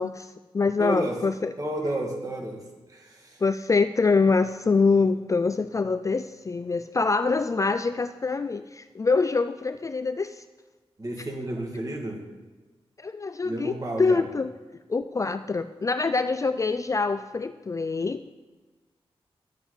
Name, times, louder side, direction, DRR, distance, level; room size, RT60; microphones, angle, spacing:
voice 1, 0.0-1.5 3.4-10.4 13.0-14.5 14.9-18.3, left 4 dB, 30° left, 11 dB, 0.3 m, -25 dB
voice 2, 0.8-1.2 1.6-3.4 11.0-12.2 13.4-14.2, right 1 dB, 35° right, 0 dB, 2.2 m, -31 dB
12.0 x 7.7 x 4.1 m, 1.3 s
wide cardioid pair, 90°, 10 cm